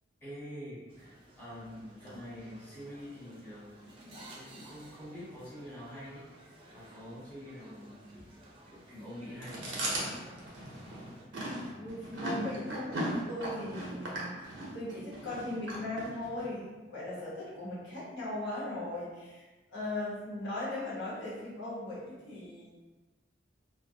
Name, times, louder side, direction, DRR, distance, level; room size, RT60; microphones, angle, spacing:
voice 1, 0.2-10.1, equal, 10° left, -11 dB, 1.0 m, -46 dB
sound 1, 0.9-11.3, right 1 dB, 30° right, 0.4 m, -55 dB
Chewing mastication, 9.4-16.5, right 1 dB, 85° right, 0.6 m, -37 dB
voice 2, 11.8-19.4 19.7-22.7, left 1 dB, 75° left, -8 dB, 0.9 m, -38 dB
2.2 x 2.1 x 2.7 m, 1.2 s
head